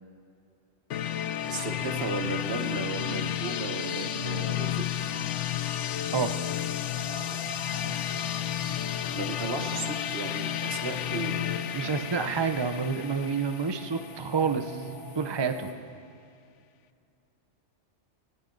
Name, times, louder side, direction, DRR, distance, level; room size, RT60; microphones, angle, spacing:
sound 1, 0.9-14.6, left 11 dB, 90° left, 0.9 m, -32 dB
voice 1, 1.4-4.9 9.1-12.1, right 3 dB, 60° right, 5 dB, 1.4 m, -35 dB
sound 2, 6.2-15.7, right 1 dB, 65° left, 2.1 m, -44 dB
voice 2, 11.7-14.8 15.2-15.7, right 5 dB, 30° right, 8 dB, 0.5 m, -28 dB
25.0 x 13.0 x 3.9 m, 2.5 s
omnidirectional pair, 1.2 m